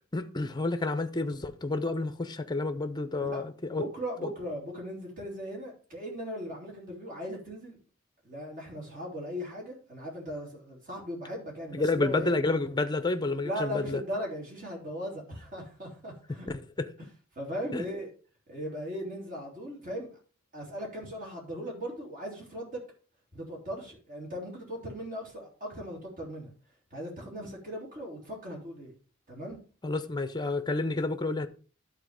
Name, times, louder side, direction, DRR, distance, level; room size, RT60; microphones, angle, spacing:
voice 1, 0.1-3.8 4.2-4.3 11.7-14.0 16.8-16.9 17.7-17.8 29.8-31.5, left 3 dB, 20° left, 0.6 m, -30 dB
voice 2, 3.2-7.8 8.2-12.3 13.4-16.5 17.3-18.1 18.5-20.1 20.5-22.8 23.3-26.5 26.9-28.9 29.3-29.6, equal, 40° right, 3.4 m, -38 dB
11.5 x 4.3 x 4.8 m
head